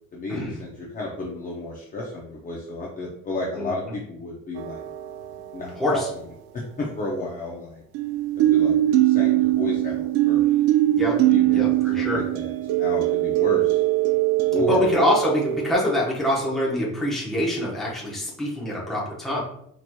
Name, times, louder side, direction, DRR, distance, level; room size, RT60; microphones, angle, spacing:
voice 1, 0.1-4.8 5.5-6.0 6.5-7.8 8.3-10.6 11.3-13.8 14.5-14.9, left 2 dB, 25° left, -4 dB, 0.5 m, -32 dB
voice 2, 3.6-3.9 5.8-5.9 10.9-11.2 11.5-12.2 14.6-19.4, left 1 dB, ahead, -5 dB, 0.8 m, -25 dB
sound 1, 4.6-5.4 7.9-15.7, right 15 dB, 85° right, 0.5 m, -21 dB
4.2 x 2.9 x 2.2 m, 0.71 s
cardioid pair, 160°, 35 cm